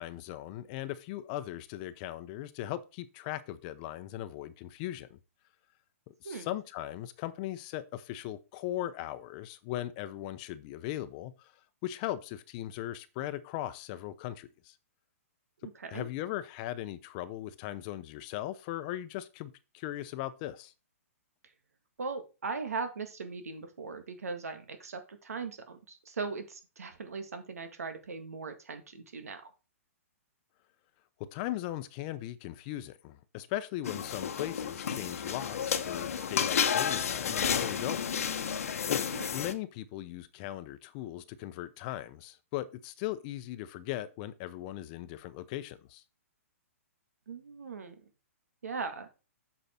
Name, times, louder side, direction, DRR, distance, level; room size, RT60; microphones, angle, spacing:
voice 1, 0.0-5.2 6.1-11.5 11.8-14.8 15.9-20.7 31.3-38.0 39.3-46.0, left 14 dB, 35° left, 0.8 m, -38 dB
voice 2, 15.6-16.1 22.0-29.5 39.1-39.3 47.3-47.9 48.6-49.1, right 4 dB, 85° right, 1.8 m, -39 dB
sound 1, 33.8-39.5, left 7 dB, 75° left, 1.1 m, -31 dB
8.3 x 5.5 x 4.4 m
hypercardioid pair, 145°, 8 cm